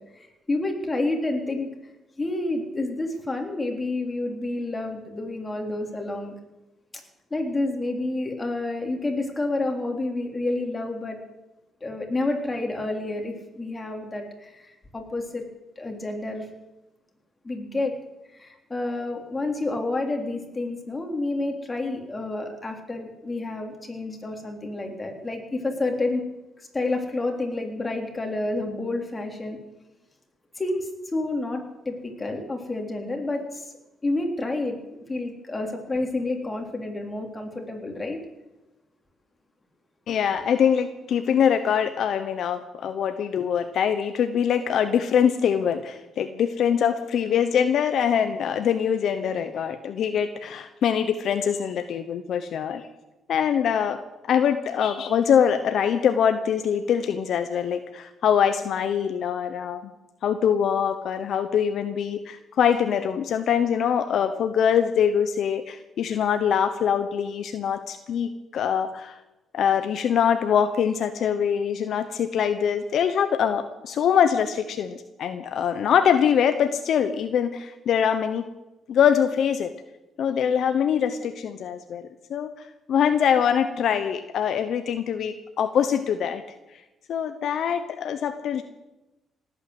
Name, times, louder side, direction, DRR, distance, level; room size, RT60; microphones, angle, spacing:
voice 1, 0.2-1.7 2.2-6.4 7.3-11.2 11.8-15.5 15.8-16.5 17.4-18.0 18.3-26.2 26.7-29.6 30.6-33.7 34.0-38.2, left 2 dB, 20° left, 2 dB, 3.6 m, -29 dB
voice 2, 40.1-52.9 53.3-54.0 54.3-59.9 60.2-69.2 69.5-78.4 78.9-79.7 80.2-82.5 82.9-86.5 87.1-88.6, left 8 dB, 70° left, 9 dB, 1.0 m, -23 dB
18.5 x 8.9 x 8.1 m, 1.0 s
cardioid pair, 90°, 0 cm